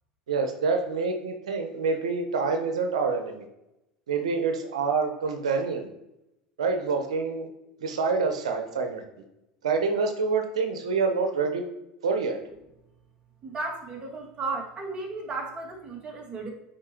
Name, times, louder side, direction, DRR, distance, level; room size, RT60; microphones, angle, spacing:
voice 1, 0.3-3.4 4.1-5.9 6.6-7.5 7.8-9.0 9.6-11.6 12.0-12.4, right 4 dB, 80° right, 5 dB, 1.1 m, -27 dB
voice 2, 13.4-16.5, right 3 dB, 30° right, 0 dB, 2.2 m, -34 dB
9.9 x 4.5 x 3.0 m, 0.89 s
hypercardioid pair, 80°, 3 cm